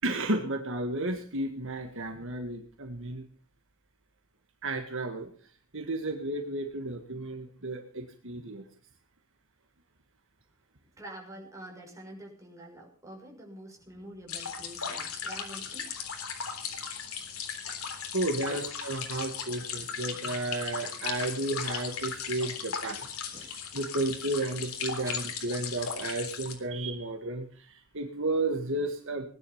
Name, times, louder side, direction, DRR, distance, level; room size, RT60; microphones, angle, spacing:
voice 1, 0.0-3.2 4.6-5.3 5.7-8.6 18.1-23.1 23.4-29.3, right 2 dB, 60° right, 4 dB, 1.9 m, -33 dB
voice 2, 11.0-15.9 18.4-18.6 23.3-23.5 25.0-25.2, right 1 dB, 15° right, -1 dB, 6.2 m, -46 dB
sound 1, 14.3-26.6, left 6 dB, 75° left, 3.6 m, -37 dB
19.5 x 10.5 x 5.7 m, 0.43 s
head